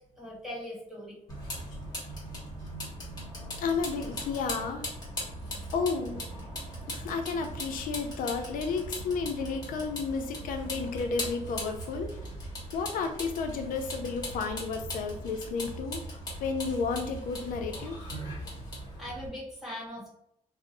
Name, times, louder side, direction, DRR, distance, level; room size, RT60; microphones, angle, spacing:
voice 1, 0.2-1.1 19.0-20.1, left 1 dB, 5° right, -5 dB, 1.0 m, -40 dB
Vehicle, 1.3-19.3, equal, 30° left, 1.1 m, -39 dB
voice 2, 3.6-4.9 5.7-6.2 6.9-12.1 12.7-18.0, left 5 dB, 85° left, 5 dB, 0.4 m, -32 dB
2.6 x 2.0 x 3.9 m, 0.77 s
cardioid pair, 155°, 14 cm